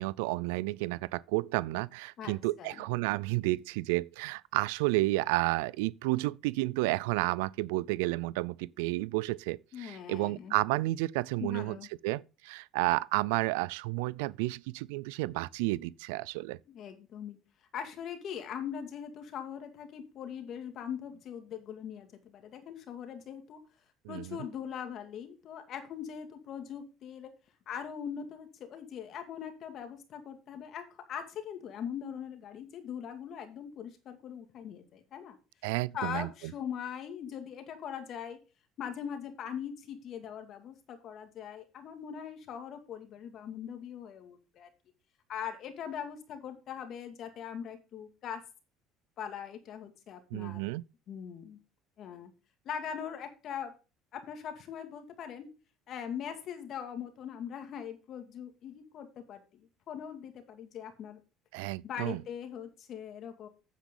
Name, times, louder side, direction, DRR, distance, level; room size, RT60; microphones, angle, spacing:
voice 1, 0.0-11.8 12.0-16.6 24.1-24.4 35.6-36.3 50.3-50.8 61.5-62.2, right 21 dB, 85° right, 0.3 m, -31 dB
voice 2, 2.2-2.8 9.7-10.6 11.4-11.9 16.7-17.4 17.7-23.6 24.1-27.3 27.7-35.4 35.9-38.4 38.8-44.7 45.3-48.4 49.2-50.6 51.1-51.6 52.0-52.3 52.6-53.7 54.1-55.5 55.9-61.2 61.8-63.5, left 8 dB, 55° left, 2.3 m, -41 dB
9.1 x 8.2 x 3.8 m
supercardioid pair, 90°, 0 cm